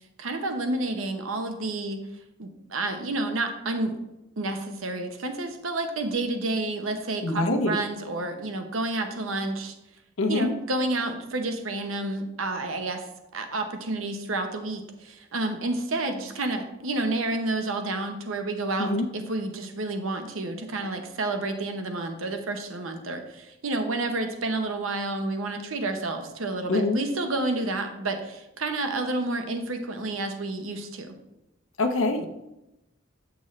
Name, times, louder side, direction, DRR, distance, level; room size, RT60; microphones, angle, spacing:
voice 1, 0.2-2.0 2.4-3.9 4.4-9.7 10.3-13.1 13.3-31.2, right 2 dB, 90° right, 6 dB, 0.9 m, -30 dB
voice 2, 7.2-7.7 10.2-10.5 18.8-19.0 26.7-27.0 31.8-32.3, left 2 dB, 80° left, 5 dB, 0.9 m, -24 dB
8.6 x 6.1 x 3.2 m, 0.92 s
head